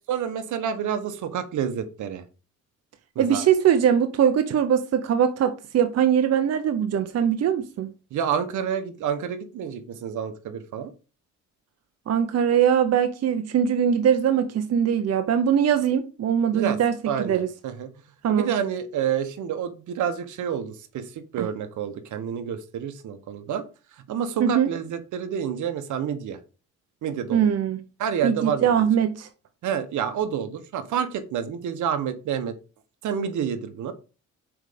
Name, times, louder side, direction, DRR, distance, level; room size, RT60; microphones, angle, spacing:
voice 1, 0.1-2.2 3.1-3.4 8.1-10.9 16.5-16.8 17.1-17.9 18.3-23.6 24.0-26.4 27.0-27.5 28.0-28.9 29.6-32.5 33.0-33.9, right 8 dB, 75° right, 1.2 m, -29 dB
voice 2, 3.2-7.9 12.1-17.5 18.2-18.5 21.4-21.5 24.4-24.7 27.3-27.8 28.2-29.3, right 8 dB, 55° right, 0.8 m, -21 dB
6.4 x 4.8 x 5.1 m
cardioid pair, 90°, 30 cm